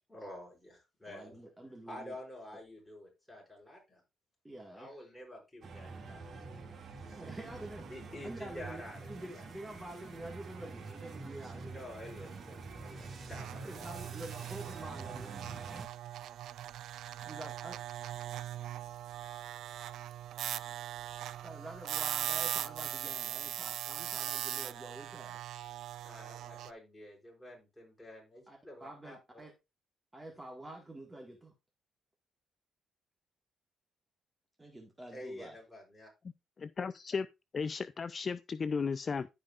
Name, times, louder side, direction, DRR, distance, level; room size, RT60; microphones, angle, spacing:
voice 1, 0.1-1.4 1.9-4.0 4.7-6.2 7.0-7.6 7.9-9.5 10.0-10.1 11.6-13.9 26.0-29.4 35.1-36.1, left 1 dB, 10° left, 6.0 m, -49 dB
voice 2, 1.0-2.2 4.4-4.9 7.2-7.9 8.2-8.8 9.1-11.8 13.6-15.3 17.2-17.8 21.4-25.4 28.5-29.5 30.1-31.5 34.6-35.6, right 1 dB, 15° right, 1.7 m, -47 dB
sound 1, 5.6-15.9, right 4 dB, 50° right, 2.2 m, -46 dB
sound 2, 13.3-26.7, right 12 dB, 80° right, 0.4 m, -40 dB
voice 3, 36.6-37.3 37.5-39.3, left 5 dB, 40° left, 0.4 m, -35 dB
14.0 x 5.1 x 2.4 m
cardioid pair, 90°, 0 cm